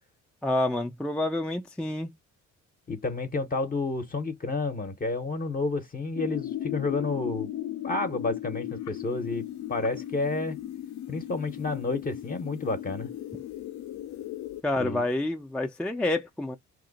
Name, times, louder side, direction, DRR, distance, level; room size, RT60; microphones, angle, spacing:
voice 1, 0.4-2.1 14.6-16.6, left 1 dB, 5° left, 0.3 m, -28 dB
voice 2, 2.9-7.5 7.8-10.6 11.1-13.1 14.8-15.0, left 3 dB, 30° left, 0.6 m, -30 dB
sound 1, 6.1-14.6, left 12 dB, 70° left, 0.4 m, -36 dB
2.9 x 2.0 x 3.8 m
cardioid pair, 90°, 30 cm